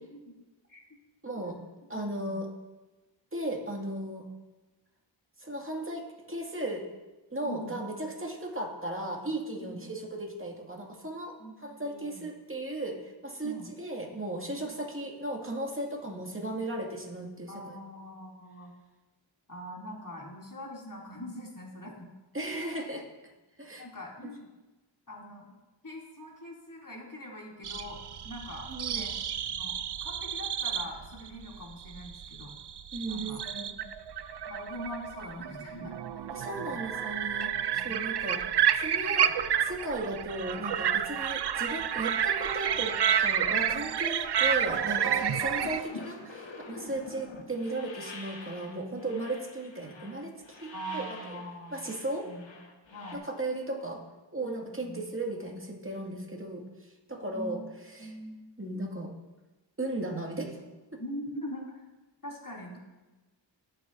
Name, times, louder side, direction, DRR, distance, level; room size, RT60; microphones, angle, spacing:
voice 1, 1.2-1.6 1.9-2.5 3.3-4.3 5.4-6.8 7.3-17.8 22.3-23.1 23.6-23.9 24.2-24.3 28.7-29.1 32.9-33.7 36.3-39.3 39.6-51.4 51.7-52.3 53.1-54.0 54.3-56.6 57.1-58.1 58.6-59.1 59.8-61.0, right 1 dB, 25° right, 0 dB, 2.2 m, -36 dB
voice 2, 1.9-2.4 7.4-7.8 9.6-9.7 11.4-12.3 13.4-13.7 17.5-18.7 19.5-22.1 23.8-24.5 25.1-25.5 25.8-28.0 28.2-29.2 29.5-32.5 33.1-33.4 34.4-36.3 36.7-37.0 37.7-37.9 46.8-46.9 50.7-51.9 52.2-52.5 52.9-53.3 54.4-55.0 57.2-58.4 61.0-61.8 62.2-62.8, equal, 45° left, -2 dB, 3.0 m, -43 dB
sound 1, 27.6-45.8, right 9 dB, 60° right, 0.6 m, -30 dB
sound 2, 44.4-53.2, left 3 dB, 75° left, 1.6 m, -46 dB
20.5 x 7.7 x 2.7 m, 1.1 s
wide cardioid pair, 50°, 46 cm